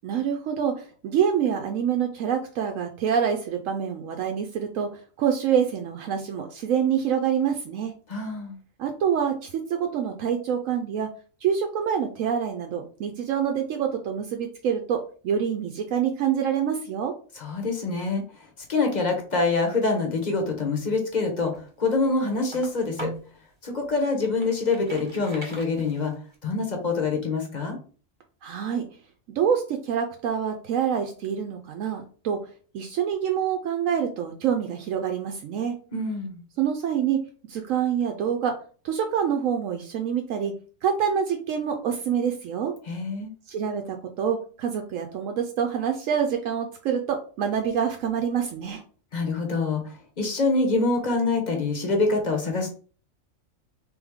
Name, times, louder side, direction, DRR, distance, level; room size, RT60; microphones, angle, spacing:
voice 1, 0.0-7.9 8.8-11.1 11.4-17.1 28.4-28.8 29.3-32.4 32.7-35.7 36.6-37.2 37.5-38.5 38.8-40.5 40.8-42.7 43.5-48.8, right 8 dB, 80° right, 4 dB, 1.0 m, -26 dB
voice 2, 8.1-8.6 17.3-23.1 23.6-26.1 26.4-27.8 35.9-36.4 42.9-43.3 49.1-52.7, left 3 dB, 35° left, 3 dB, 1.0 m, -25 dB
sound 1, 21.5-23.3 23.9-26.4, right 2 dB, 25° right, 1.0 m, -41 dB
3.5 x 3.4 x 3.5 m, 0.40 s
omnidirectional pair, 1.4 m